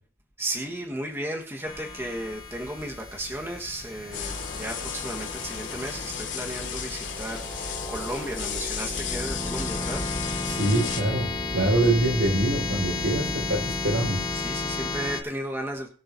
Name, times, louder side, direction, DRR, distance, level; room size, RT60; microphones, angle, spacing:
voice 1, 0.4-10.1 14.3-15.9, right 1 dB, 10° right, -1 dB, 1.5 m, -34 dB
sound 1, 1.6-15.2, left 2 dB, 20° left, 1.3 m, -33 dB
sound 2, 4.1-11.0, left 7 dB, 60° left, 2.3 m, -34 dB
voice 2, 10.5-14.2, right 2 dB, 75° right, 0 dB, 4.8 m, -24 dB
22.0 x 7.4 x 2.8 m, 0.42 s
head